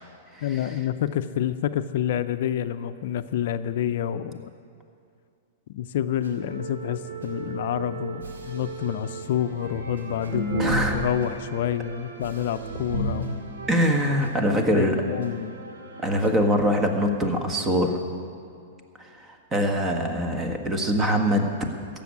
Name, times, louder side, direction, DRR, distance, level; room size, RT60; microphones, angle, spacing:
voice 1, 0.4-4.4 5.7-13.4 14.7-15.6, left 10 dB, 65° left, 12 dB, 0.5 m, -28 dB
sound 1, 6.2-16.3, right 4 dB, 85° right, 2.1 m, -39 dB
sound 2, 9.7-11.3 11.6-11.7 12.3-12.4 12.7-13.4 14.1-14.2 14.5-14.6 14.8-15.1 16.0-16.1 16.3-16.4 17.1-17.2 17.4-17.5, right 1 dB, 55° right, 1.9 m, -29 dB
voice 2, 10.6-11.0 13.7-15.0 16.0-18.0 19.2-21.5, equal, 20° right, 5 dB, 1.7 m, -23 dB
15.0 x 7.0 x 9.5 m, 2.4 s
hypercardioid pair, 110°, 0 cm